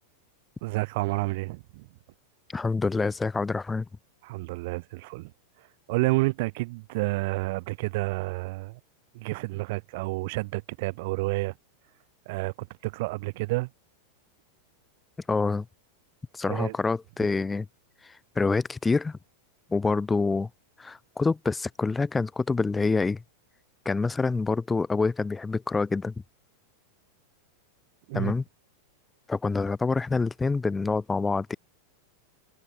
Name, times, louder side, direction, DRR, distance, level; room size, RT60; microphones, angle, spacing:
voice 1, 0.6-1.9 4.2-5.3 5.9-8.8 9.1-11.5 12.3-13.7 16.5-16.8 28.1-28.3, right 23 dB, 50° right, 2.4 m, -30 dB
voice 2, 2.5-3.9 15.3-15.6 16.3-17.7 18.0-19.2 19.7-20.5 20.8-23.2 23.8-26.1 28.1-28.4 29.3-31.6, left 4 dB, 10° left, 1.0 m, -26 dB
figure-of-eight pair, 90°, 0 cm